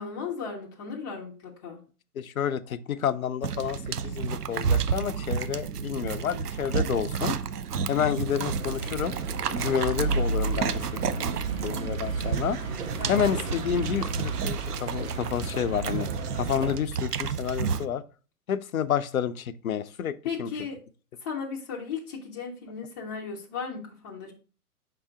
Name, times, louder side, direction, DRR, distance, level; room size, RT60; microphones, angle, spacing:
voice 1, 0.0-1.8 7.9-8.2 13.0-13.6 20.2-20.8 21.2-24.3, left 5 dB, 15° left, -2 dB, 0.5 m, -36 dB
voice 2, 2.2-7.4 7.9-9.1 9.5-10.8 11.1-11.4 11.6-12.6 13.1-16.1 16.3-18.0 18.5-20.5, left 8 dB, 65° left, 14 dB, 0.6 m, -29 dB
sound 1, 3.4-17.9, right 7 dB, 85° right, 0.5 m, -31 dB
sound 2, 8.5-16.7, right 3 dB, 60° right, 1.6 m, -33 dB
5.4 x 3.9 x 4.6 m, 0.37 s
figure-of-eight pair, 115°, 45 cm